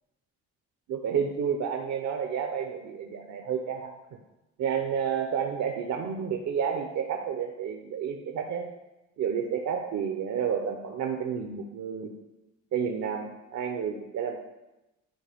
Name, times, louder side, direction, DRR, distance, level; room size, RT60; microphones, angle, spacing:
voice 1, 0.9-3.9 4.6-8.7 9.2-12.1 12.7-14.4, right 7 dB, 65° right, 3 dB, 0.8 m, -30 dB
11.5 x 4.6 x 3.5 m, 0.99 s
cardioid pair, 90°, 30 cm